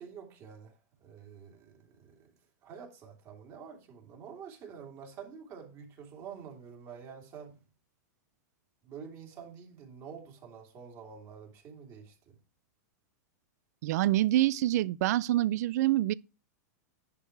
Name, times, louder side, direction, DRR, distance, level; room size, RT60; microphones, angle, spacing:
voice 1, 0.0-2.3 2.6-7.6 8.8-12.4, right 7 dB, 35° right, 2.8 m, -48 dB
voice 2, 13.8-16.1, right 14 dB, 65° right, 0.4 m, -26 dB
10.5 x 4.6 x 4.6 m
hypercardioid pair, 140°, 10 cm